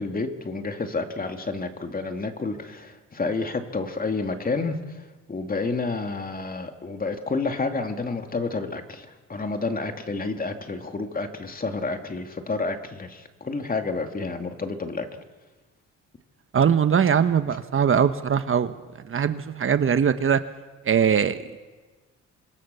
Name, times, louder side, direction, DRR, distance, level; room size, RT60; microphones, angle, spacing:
voice 1, 0.0-5.0 5.3-15.1, left 3 dB, 30° left, 5 dB, 2.6 m, -30 dB
voice 2, 16.5-18.8 19.0-20.4 20.8-21.6, right 7 dB, 45° right, 10 dB, 1.2 m, -21 dB
26.5 x 21.5 x 7.0 m, 1.3 s
cardioid pair, 90°, 30 cm